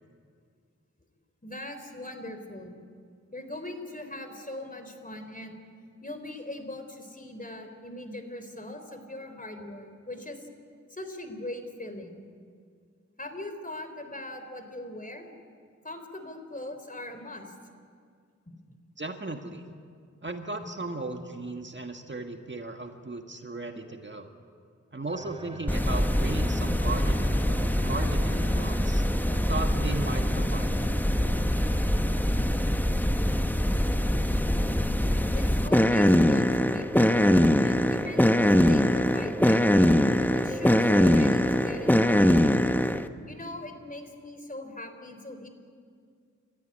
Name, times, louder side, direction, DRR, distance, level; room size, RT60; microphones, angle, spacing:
voice 1, 1.4-2.8 3.3-5.6 6.0-10.5 10.9-12.2 13.2-15.3 15.8-17.5 18.4-18.5 35.3-39.8 40.3-42.3 43.2-45.5, left 1 dB, 25° left, 7 dB, 3.6 m, -40 dB
voice 2, 19.0-19.7 20.2-24.3 24.9-29.0 29.5-30.9, right 2 dB, 40° right, 5 dB, 1.7 m, -36 dB
sound 1, 25.1-43.0, right 1 dB, 20° right, 2.9 m, -43 dB
sound 2, 25.7-43.1, left 1 dB, 5° left, 0.9 m, -23 dB
27.0 x 14.5 x 9.9 m, 2.2 s
cardioid pair, 55°, 30 cm